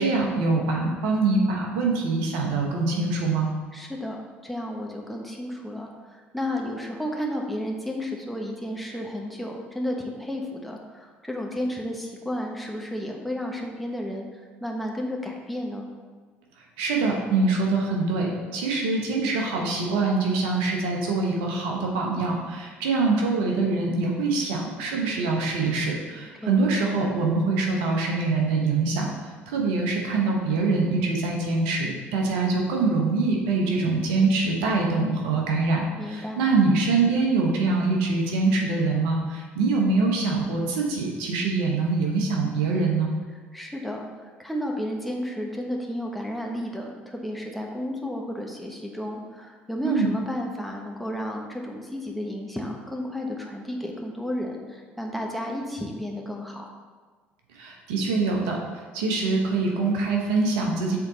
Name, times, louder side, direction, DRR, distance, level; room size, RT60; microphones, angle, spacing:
voice 1, 0.0-3.5 16.8-43.1 49.8-50.1 57.5-58.6 58.9-61.0, right 3 dB, 75° right, 0 dB, 1.1 m, -24 dB
voice 2, 3.7-15.9 26.4-26.6 36.0-36.4 43.5-56.7, equal, ahead, 0 dB, 1.2 m, -32 dB
7.1 x 4.0 x 3.9 m, 1.4 s
hypercardioid pair, 60°, 6 cm